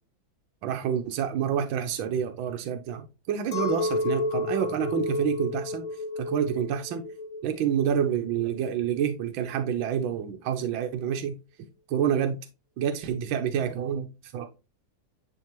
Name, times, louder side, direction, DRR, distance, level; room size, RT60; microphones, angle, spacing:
voice 1, 0.6-5.8 6.2-7.0 7.4-11.3 11.9-12.4 12.8-14.5, right 8 dB, 80° right, 5 dB, 1.5 m, -28 dB
Chink clink, 3.5-9.0, left 2 dB, 40° left, 0.9 m, -31 dB
10.0 x 3.4 x 3.0 m, 0.29 s
omnidirectional pair, 2.1 m